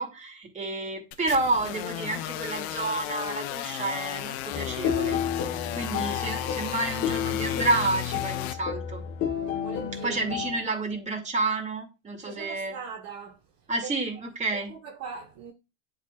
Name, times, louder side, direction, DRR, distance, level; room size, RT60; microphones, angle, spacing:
voice 1, 0.0-5.2 5.7-9.0 10.0-12.7 13.7-14.7, right 3 dB, 20° right, 2.2 m, -30 dB
sound 1, 1.1-8.5, left 12 dB, 60° left, 0.8 m, -34 dB
sound 2, 4.5-10.6, left 8 dB, 40° left, 1.0 m, -31 dB
voice 2, 9.6-10.3 12.2-13.4 13.8-13.9 14.5-15.5, right 6 dB, 50° right, 1.2 m, -40 dB
10.5 x 3.9 x 2.4 m
hypercardioid pair, 85°, 36 cm